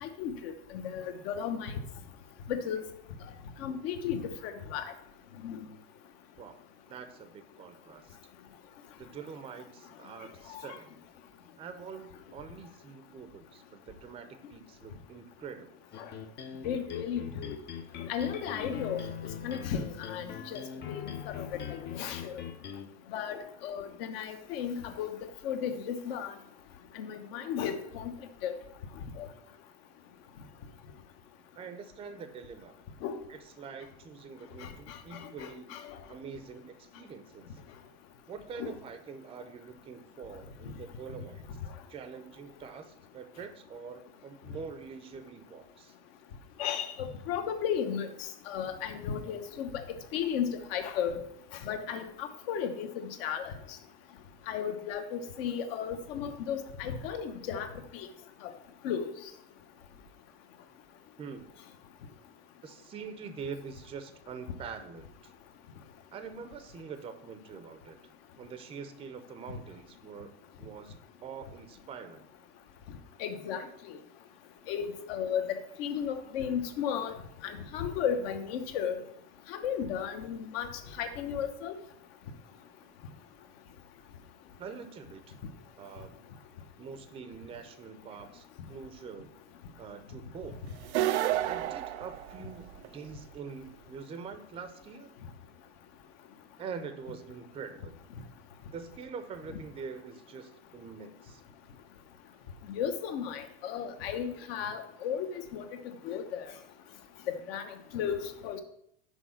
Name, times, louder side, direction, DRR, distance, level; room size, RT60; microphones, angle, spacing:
voice 1, 0.0-1.7 2.5-2.8 3.6-4.8 5.4-5.6 10.6-10.8 16.0-16.1 16.6-17.6 18.1-19.0 19.4-22.3 23.1-25.1 25.4-26.3 26.9-28.1 28.4-28.5 29.2-29.3 33.0-33.2 34.6-36.0 38.6-38.7 46.6-49.7 50.1-51.2 51.6-53.5 54.5-57.7 57.9-58.1 58.4-58.5 58.8-59.1 73.2-74.0 74.7-77.2 77.4-79.0 79.5-80.7 81.0-81.8 99.5-99.6 102.7-105.7 106.0-106.4 107.3-108.6, left 8 dB, 60° left, 7 dB, 1.0 m, -34 dB
voice 2, 6.9-8.2 9.0-10.9 11.6-15.7 31.6-32.8 33.3-35.7 36.1-37.6 38.3-41.4 41.9-45.9 61.2-61.5 62.6-65.3 66.1-68.0 68.4-70.9 71.2-72.3 84.6-85.4 85.8-86.2 86.8-89.3 89.8-90.6 91.4-95.1 96.6-98.0 98.7-101.4, right 6 dB, 15° right, 9 dB, 0.6 m, -45 dB
sound 1, 15.9-22.8, left 8 dB, 30° left, 0.7 m, -42 dB
sound 2, 90.8-92.9, right 13 dB, 80° right, 0.5 m, -30 dB
6.3 x 4.6 x 5.6 m, 0.72 s
supercardioid pair, 125°, 33 cm